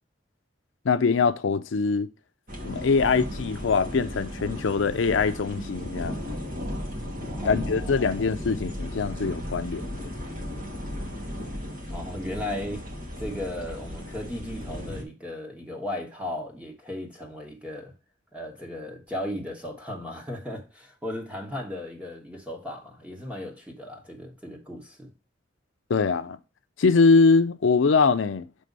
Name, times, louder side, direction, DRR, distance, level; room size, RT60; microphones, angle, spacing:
voice 1, 0.8-2.1 2.6-6.2 7.4-10.1 25.9-26.4 26.8-28.5, left 4 dB, 85° left, 0.5 m, -23 dB
sound 1, 2.5-15.0, left 1 dB, 50° right, 1.9 m, -35 dB
voice 2, 7.3-8.1 11.9-12.8 13.2-17.9 18.3-25.1, left 1 dB, 5° right, 1.5 m, -36 dB
6.4 x 3.4 x 5.3 m
head